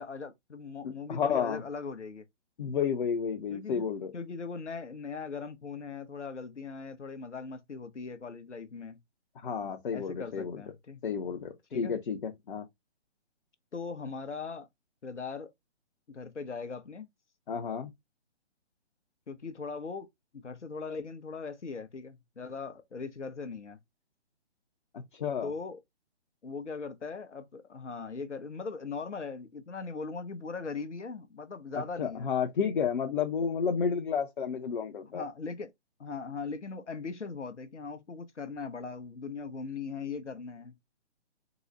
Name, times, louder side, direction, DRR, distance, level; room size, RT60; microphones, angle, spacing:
voice 1, 0.0-2.3 3.5-3.8 4.1-9.0 9.9-11.0 11.7-12.0 13.7-14.7 15.0-15.5 16.1-17.1 19.3-20.1 20.3-23.8 25.4-25.8 26.4-32.3 35.1-35.7 36.0-40.8, left 4 dB, 85° left, 0.8 m, -39 dB
voice 2, 0.8-1.6 2.6-4.1 9.4-10.6 11.0-12.6 17.5-17.9 25.1-25.5 31.7-35.2, left 6 dB, 45° left, 0.6 m, -31 dB
3.9 x 2.0 x 3.7 m
figure-of-eight pair, 140°, 34 cm